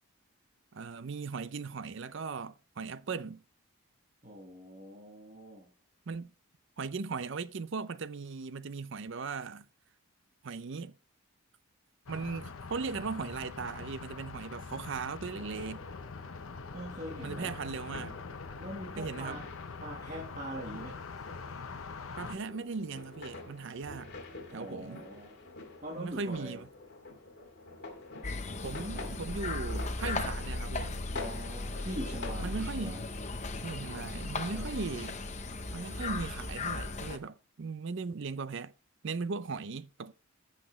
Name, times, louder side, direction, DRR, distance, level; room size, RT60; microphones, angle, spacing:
voice 1, 0.7-3.4 6.1-6.3 6.8-9.6 10.4-10.9 12.1-15.9 17.2-18.2 19.0-19.4 22.2-24.1 24.5-25.0 26.0-26.7 28.5-31.0 32.4-33.0 33.6-35.2 35.7-38.7 39.0-40.1, right 4 dB, 55° right, 0.5 m, -38 dB
voice 2, 4.2-5.7 16.7-17.6 18.6-19.5 19.8-21.2 21.5-21.6 24.5-25.4 25.8-26.6 31.1-33.0 34.4-34.9, equal, 35° right, 1.4 m, -43 dB
sound 1, 12.1-22.4, left 4 dB, 70° left, 0.8 m, -44 dB
sound 2, 15.4-32.3, left 3 dB, 50° left, 2.5 m, -47 dB
sound 3, 28.2-37.2, left 2 dB, 30° left, 0.8 m, -37 dB
14.5 x 5.8 x 3.1 m
head